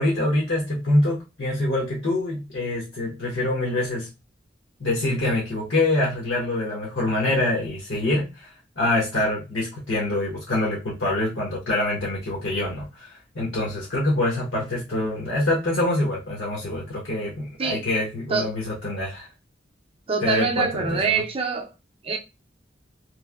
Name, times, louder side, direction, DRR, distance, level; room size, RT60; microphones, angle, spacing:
voice 1, 0.0-4.1 4.8-8.5 8.8-19.3 20.2-21.1, left 1 dB, 70° left, 0.9 m, -25 dB
voice 2, 20.1-21.7 22.0-22.2, right 4 dB, 30° right, 0.5 m, -24 dB
3.1 x 2.5 x 2.3 m
head